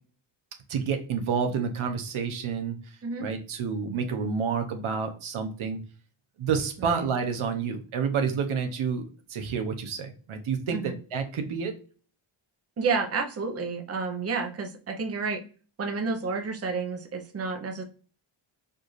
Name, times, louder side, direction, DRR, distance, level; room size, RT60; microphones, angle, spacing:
voice 1, 0.7-2.8 3.2-5.8 6.4-9.0 9.3-11.7, right 6 dB, 80° right, 6 dB, 0.8 m, -29 dB
voice 2, 12.8-15.4 15.8-17.8, right 4 dB, 30° right, 5 dB, 0.7 m, -30 dB
4.6 x 2.4 x 3.1 m, 0.39 s
cardioid pair, 90°, 49 cm